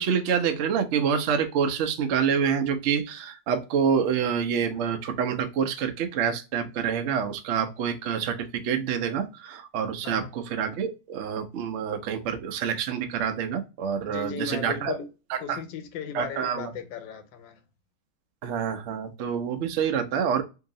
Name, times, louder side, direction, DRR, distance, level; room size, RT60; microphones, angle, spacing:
voice 1, 0.0-15.0 15.3-15.6 16.1-16.7 18.4-20.4, right 7 dB, 75° right, 0.6 m, -27 dB
voice 2, 10.0-10.3 14.0-15.1 15.4-17.6, left 7 dB, 85° left, 1.4 m, -36 dB
2.8 x 2.8 x 3.7 m
omnidirectional pair, 2.0 m